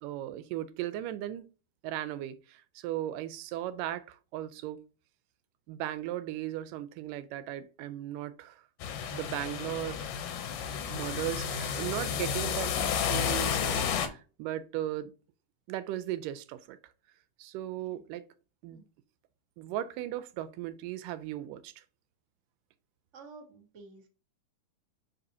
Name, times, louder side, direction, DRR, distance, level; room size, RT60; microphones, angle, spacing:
voice 1, 0.0-1.5 1.8-4.8 5.7-8.6 9.1-10.1 10.9-15.1 15.7-16.8 17.4-18.3 18.6-18.8 19.6-21.8, right 13 dB, 85° right, 2.2 m, -37 dB
sound 1, 8.8-14.1, left 7 dB, 80° left, 2.4 m, -31 dB
voice 2, 23.1-24.1, right 4 dB, 65° right, 0.7 m, -51 dB
6.7 x 5.3 x 2.8 m
omnidirectional pair, 3.8 m